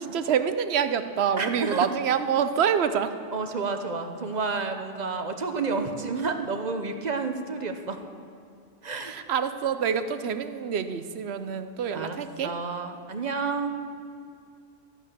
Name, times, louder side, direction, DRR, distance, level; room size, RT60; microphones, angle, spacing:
voice 1, 0.1-3.2 9.0-12.5, right 7 dB, 65° right, 11 dB, 0.9 m, -26 dB
voice 2, 1.4-1.9 3.3-8.0 8.8-9.1 11.9-13.8, right 4 dB, 40° right, 6 dB, 0.9 m, -30 dB
13.5 x 8.7 x 6.7 m, 2.5 s
omnidirectional pair, 1.2 m